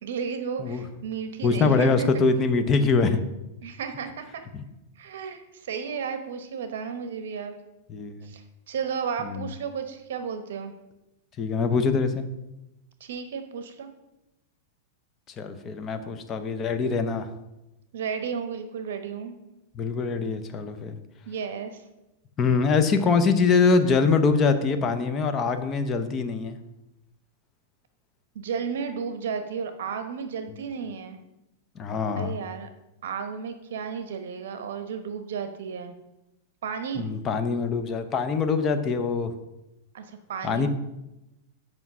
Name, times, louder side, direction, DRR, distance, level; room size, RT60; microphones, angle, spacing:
voice 1, 0.0-2.2 3.6-4.4 5.0-7.5 8.2-10.7 13.0-13.9 17.9-19.3 21.3-21.8 28.3-31.2 32.2-32.7 33.0-35.9 36.6-37.1 39.9-40.7, right 6 dB, 75° right, 8 dB, 1.0 m, -33 dB
voice 2, 1.4-3.2 4.5-4.6 7.9-8.3 9.2-9.4 11.4-12.3 15.4-17.3 19.8-21.0 22.4-26.6 31.8-32.4 37.0-39.3 40.4-40.7, left 4 dB, 20° left, 8 dB, 0.7 m, -23 dB
8.1 x 5.3 x 6.1 m, 0.94 s
supercardioid pair, 160°, 0 cm